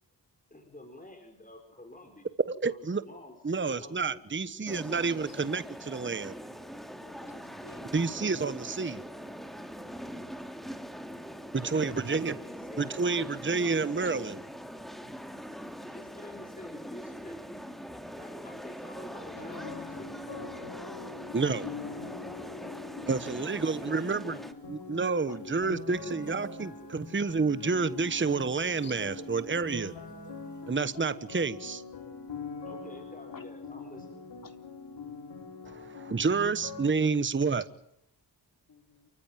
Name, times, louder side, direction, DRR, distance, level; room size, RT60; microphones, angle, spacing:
voice 1, 0.5-2.3 2.6-4.1 5.0-5.1 11.6-13.0 13.4-14.3 15.8-17.4 18.1-20.1 23.4-24.4 25.3-25.4 32.5-34.3, left 1 dB, 20° left, 4 dB, 4.6 m, -50 dB
voice 2, 2.5-3.0 3.4-6.4 7.9-9.0 11.5-12.4 12.8-14.4 21.3-21.6 23.1-24.3 24.7-29.9 30.7-31.8 35.7-37.6, right 4 dB, 30° right, 14 dB, 1.2 m, -29 dB
sound 1, 4.7-24.5, equal, ahead, 2.6 m, -42 dB
voice 3, 7.0-7.9 14.0-14.1 19.1-19.6 25.3-25.4 28.8-29.0 33.3-33.4 34.4-34.6 37.5-37.6 38.7-39.1, left 4 dB, 55° left, 6 dB, 3.7 m, -51 dB
sound 2, 19.4-36.9, left 4 dB, 85° left, 6.0 m, -43 dB
sound 3, 24.6-30.8, right 4 dB, 45° right, 4.3 m, -51 dB
29.0 x 15.0 x 9.1 m, 0.77 s
cardioid pair, 65°, 41 cm